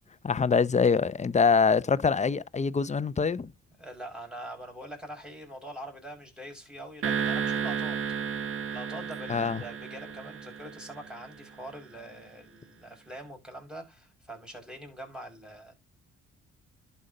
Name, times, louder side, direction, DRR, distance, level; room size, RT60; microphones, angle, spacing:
voice 1, 0.2-3.5 9.3-9.6, left 5 dB, 25° left, 0.7 m, -24 dB
voice 2, 3.8-8.0 8.7-15.7, right 1 dB, 5° right, 6.2 m, -43 dB
sound 1, 7.0-11.5, right 6 dB, 45° right, 1.0 m, -33 dB
11.0 x 5.6 x 3.9 m
cardioid pair, 90°, 30 cm